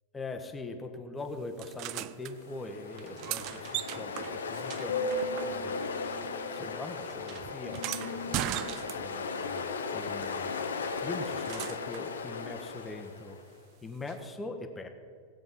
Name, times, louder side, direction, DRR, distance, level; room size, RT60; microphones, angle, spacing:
voice 1, 0.1-5.1 5.4-5.9 6.5-8.4 8.9-10.5 11.0-13.4 13.8-14.9, left 3 dB, 15° left, 6 dB, 1.2 m, -42 dB
sound 1, 1.6-2.3 2.9-5.9 6.2-9.3 10.8-12.1 14.1-14.2, right 16 dB, 40° right, 0.4 m, -39 dB
Ocean, 2.3-13.4, left 4 dB, 70° left, 0.9 m, -36 dB
18.5 x 7.7 x 5.5 m, 2.3 s
figure-of-eight pair, 90°, 0 cm